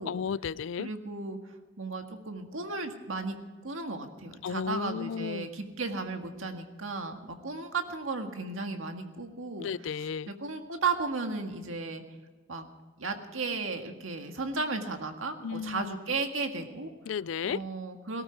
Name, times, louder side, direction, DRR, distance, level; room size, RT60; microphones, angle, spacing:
voice 1, 0.1-0.9 4.4-5.5 9.6-10.3 15.4-15.9 17.1-17.6, left 7 dB, 75° left, 21 dB, 0.4 m, -33 dB
voice 2, 0.8-1.4 1.8-3.4 3.6-9.7 10.0-12.0 12.5-12.6 13.0-16.9 17.4-18.2, right 3 dB, 85° right, 5 dB, 1.8 m, -35 dB
17.5 x 14.0 x 4.6 m, 1.3 s
head